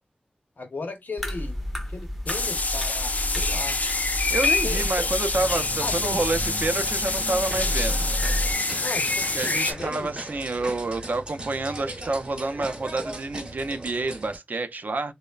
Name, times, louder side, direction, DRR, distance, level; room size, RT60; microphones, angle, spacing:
voice 1, 0.6-1.6 1.9-3.8 4.6-5.1 5.8-6.2 8.8-10.1, left 3 dB, 75° left, 0.7 m, -36 dB
sound 1, 1.2-8.5, equal, ahead, 0.5 m, -31 dB
sound 2, 2.3-9.7, left 3 dB, 55° left, 0.4 m, -26 dB
voice 2, 4.3-8.1 9.3-15.1, right 2 dB, 65° right, 0.4 m, -28 dB
sound 3, 5.3-14.4, right 1 dB, 35° right, 0.8 m, -38 dB
3.1 x 2.0 x 2.2 m
wide cardioid pair, 85°, 3 cm